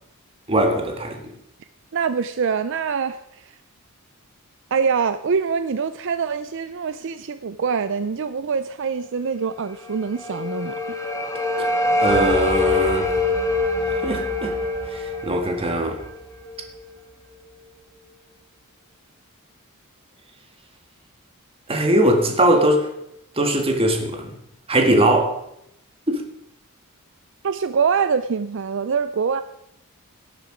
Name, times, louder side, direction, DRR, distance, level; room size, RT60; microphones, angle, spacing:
voice 1, 0.5-1.3 11.6-11.7 12.0-13.1 13.8-14.6 14.9-16.0 21.7-22.9 23.4-24.4 24.7-25.4 26.1-26.2, right 1 dB, 25° right, 1.8 m, -20 dB
voice 2, 1.9-3.5 4.7-10.8 27.4-29.4, right 6 dB, 60° right, 0.5 m, -24 dB
sound 1, 9.8-16.9, left 2 dB, 15° left, 1.2 m, -24 dB
17.5 x 6.8 x 5.0 m
head